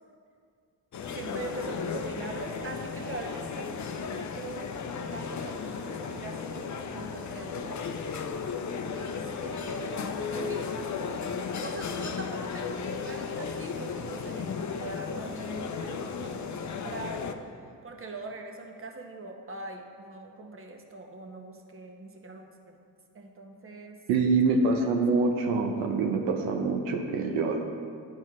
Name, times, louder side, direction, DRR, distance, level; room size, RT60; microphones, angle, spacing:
sound 1, 0.9-17.3, left 5 dB, 40° left, 0.6 m, -35 dB
voice 1, 1.1-4.7 5.1-7.8 8.9-11.3 11.6-17.2 17.8-22.7 23.1-24.0 24.5-24.6, right 2 dB, 25° right, 2 dB, 1.1 m, -42 dB
voice 2, 24.1-27.6, right 3 dB, 85° right, 2 dB, 0.7 m, -25 dB
11.0 x 4.4 x 3.7 m, 2.3 s
hypercardioid pair, 50°, 47 cm